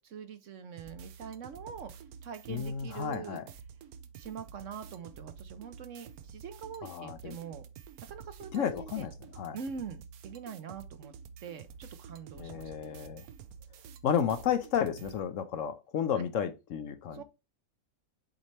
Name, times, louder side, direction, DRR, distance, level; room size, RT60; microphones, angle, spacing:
voice 1, 0.0-1.9 2.2-3.4 4.2-7.6 8.0-9.1 9.5-11.1 11.4-12.7 16.1-16.2 17.1-17.2, right 6 dB, 60° right, 1.0 m, -44 dB
sound 1, 0.8-15.2, right 7 dB, 80° right, 1.2 m, -49 dB
voice 2, 2.5-3.4 6.8-7.4 8.5-9.6 12.4-13.3 14.0-17.2, left 8 dB, 65° left, 1.0 m, -32 dB
7.4 x 4.2 x 3.3 m
omnidirectional pair, 1.5 m